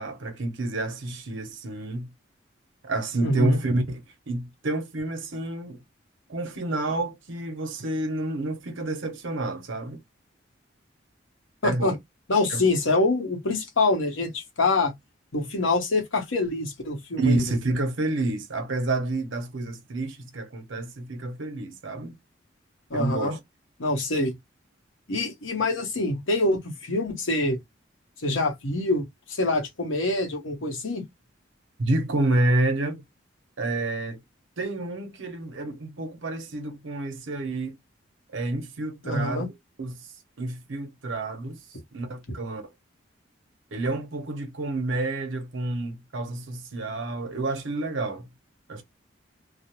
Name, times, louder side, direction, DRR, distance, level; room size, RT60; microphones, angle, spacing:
voice 1, 0.0-2.1 2.8-5.8 6.3-10.0 11.6-12.0 12.5-12.7 17.2-22.1 22.9-23.4 31.8-33.0 33.6-34.2 34.6-37.8 38.3-39.5 39.8-40.1 40.4-41.6 41.9-42.6 43.7-48.3 48.7-48.8, right 2 dB, 80° right, 0.8 m, -29 dB
voice 2, 3.2-3.6 11.6-11.9 12.3-14.9 15.3-17.4 22.9-23.3 23.8-24.4 25.1-27.6 28.2-31.0 39.0-39.5 42.3-42.4, left 2 dB, 85° left, 0.9 m, -25 dB
2.4 x 2.0 x 2.9 m
head